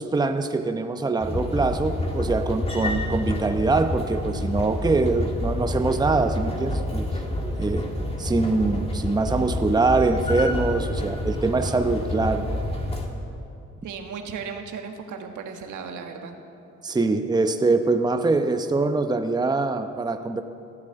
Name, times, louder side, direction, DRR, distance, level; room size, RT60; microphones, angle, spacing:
voice 1, 0.0-7.1 7.4-7.9 8.2-12.5 16.8-20.4, right 3 dB, 15° right, 7 dB, 0.8 m, -23 dB
sound 1, 1.2-13.1, left 1 dB, 20° left, 2.1 m, -28 dB
voice 2, 13.8-16.4, right 6 dB, 75° right, 4 dB, 1.7 m, -35 dB
15.0 x 9.6 x 8.0 m, 2.7 s
cardioid pair, 90°, 30 cm